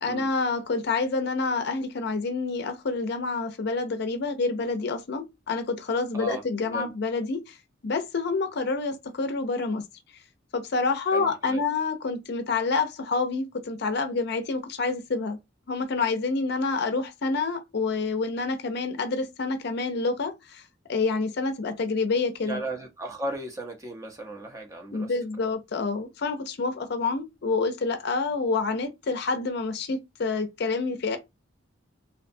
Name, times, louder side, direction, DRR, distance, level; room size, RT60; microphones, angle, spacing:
voice 1, 0.0-7.6 7.8-9.8 10.5-15.4 15.7-20.6 20.9-22.6 24.9-31.2, left 4 dB, 55° left, 0.5 m, -28 dB
voice 2, 6.1-6.9 11.1-11.6 22.4-25.1, right 1 dB, 15° right, 0.5 m, -36 dB
2.5 x 2.1 x 2.6 m
head